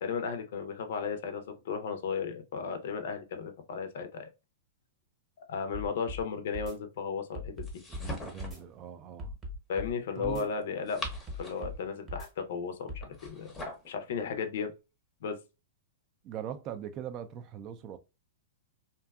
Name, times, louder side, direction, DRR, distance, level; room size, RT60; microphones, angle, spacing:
voice 1, 0.0-4.3 5.4-7.7 9.7-11.0 11.4-13.5 13.9-14.7 15.2-15.4, left 6 dB, 65° left, 0.5 m, -35 dB
sound 1, 5.7-6.2 6.5-6.7 7.3-8.1 8.4-8.6 9.2-9.9 10.2-10.4 11.0-11.8 12.1-12.3 12.9-13.0, left 1 dB, 15° right, 0.9 m, -39 dB
sound 2, 7.6-8.7 10.6-11.8 13.0-13.9, left 1 dB, 15° left, 0.7 m, -41 dB
voice 2, 7.9-9.4 10.2-10.5 16.2-18.0, right 9 dB, 35° right, 0.3 m, -41 dB
2.6 x 2.2 x 2.2 m
hypercardioid pair, 140°, 0 cm